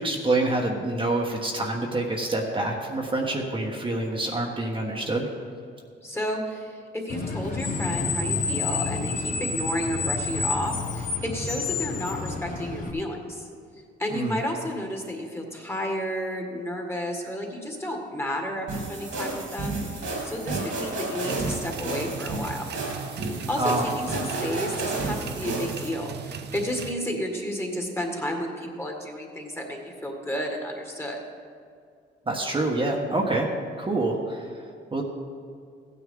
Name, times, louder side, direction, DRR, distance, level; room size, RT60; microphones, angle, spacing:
voice 1, 0.0-5.3 14.1-14.4 23.6-23.9 32.3-33.5 33.8-34.5 34.9-35.0, right 2 dB, 25° right, -1 dB, 1.3 m, -26 dB
voice 2, 6.0-13.5 14.0-22.7 23.5-31.2, equal, 10° left, 1 dB, 1.9 m, -32 dB
Screech, 7.1-12.9, left 4 dB, 45° left, 1.5 m, -29 dB
sound 1, 18.7-25.9, right 2 dB, 75° right, 3.1 m, -31 dB
sound 2, 21.2-26.9, right 7 dB, 55° right, 0.6 m, -38 dB
15.0 x 9.4 x 3.8 m, 2.3 s
cardioid pair, 90°, 20 cm